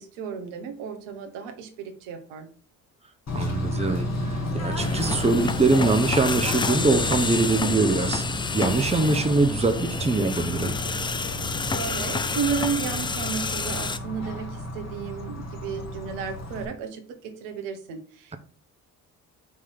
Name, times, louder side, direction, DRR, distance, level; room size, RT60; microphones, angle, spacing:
voice 1, 0.0-2.5 11.6-18.4, right 6 dB, 75° right, 5 dB, 1.1 m, -33 dB
Bird / Train, 3.3-16.6, left 1 dB, 35° left, 1.9 m, -32 dB
voice 2, 3.3-8.2 8.5-10.8, right 3 dB, 15° right, 6 dB, 0.9 m, -23 dB
sound 1, 4.8-14.0, left 4 dB, 10° left, 0.3 m, -29 dB
5.7 x 3.2 x 5.5 m, 0.41 s
hypercardioid pair, 50°, 45 cm